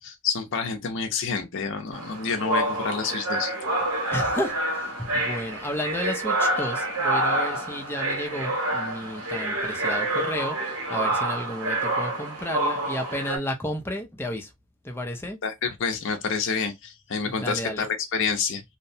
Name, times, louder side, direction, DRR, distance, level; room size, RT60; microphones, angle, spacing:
voice 1, 0.0-3.5 15.4-18.6, left 5 dB, 60° left, 0.5 m, -28 dB
sound 1, 1.9-13.4, right 2 dB, 80° right, 1.6 m, -27 dB
voice 2, 4.1-14.5 14.8-15.4 17.3-17.8, left 1 dB, 10° left, 0.5 m, -32 dB
2.8 x 2.1 x 2.6 m
head